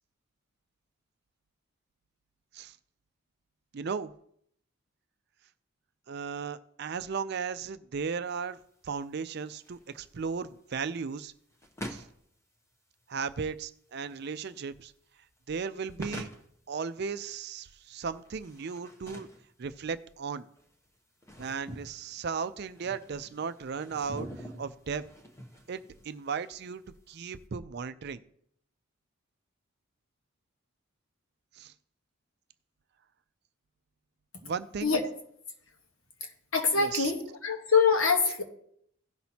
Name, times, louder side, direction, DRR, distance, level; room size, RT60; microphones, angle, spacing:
voice 1, 3.7-4.1 6.1-8.6 8.8-11.3 11.9-12.1 13.1-14.9 15.5-16.3 16.7-19.3 19.6-20.5 21.4-25.1 25.7-26.8 27.1-28.2 31.5-31.7 34.4-34.9 36.8-37.1, right 5 dB, 50° right, 12 dB, 0.4 m, -36 dB
sound 1, 8.2-27.4, equal, 15° left, 0.8 m, -48 dB
voice 2, 36.2-38.4, left 5 dB, 70° left, 4 dB, 1.3 m, -25 dB
17.0 x 6.0 x 2.8 m, 0.69 s
head